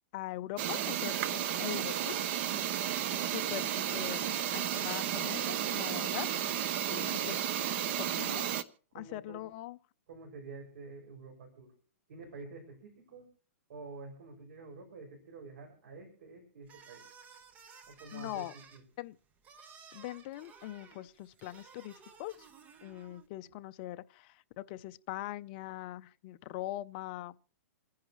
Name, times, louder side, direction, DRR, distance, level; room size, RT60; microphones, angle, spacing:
voice 1, 0.1-2.2 3.2-6.3 6.9-7.5 8.0-8.5 8.9-9.8 18.1-18.5 19.0-19.2 19.9-22.4 22.8-27.3, left 16 dB, 35° left, 0.6 m, -42 dB
sound 1, 0.6-8.6, right 10 dB, 40° right, 0.9 m, -33 dB
voice 2, 8.9-9.5 10.1-11.7 12.1-13.3 13.7-17.0 17.9-18.8, right 3 dB, 65° right, 6.1 m, -48 dB
sound 2, 16.6-23.3, right 5 dB, 20° right, 1.1 m, -56 dB
28.5 x 10.5 x 3.1 m
hypercardioid pair, 160°, 8 cm